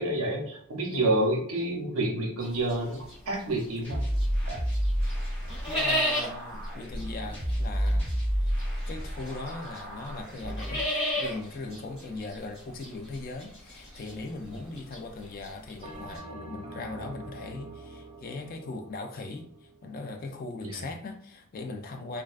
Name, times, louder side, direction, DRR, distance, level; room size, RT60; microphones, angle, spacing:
voice 1, 0.0-4.0 4.5-4.6 14.5-14.6 20.6-20.9, right 1 dB, 75° right, 0.7 m, -29 dB
sound 1, 2.4-4.4 4.7-16.2, equal, 25° left, 1.4 m, -34 dB
sound 2, 3.8-10.8, equal, 5° left, 1.0 m, -30 dB
voice 2, 5.7-8.1 8.4-8.5 8.9-10.9 11.2-22.2, left 3 dB, 40° left, 0.3 m, -39 dB
Bell, 15.8-20.4, right 2 dB, 30° right, 0.4 m, -45 dB
2.4 x 2.2 x 2.4 m
head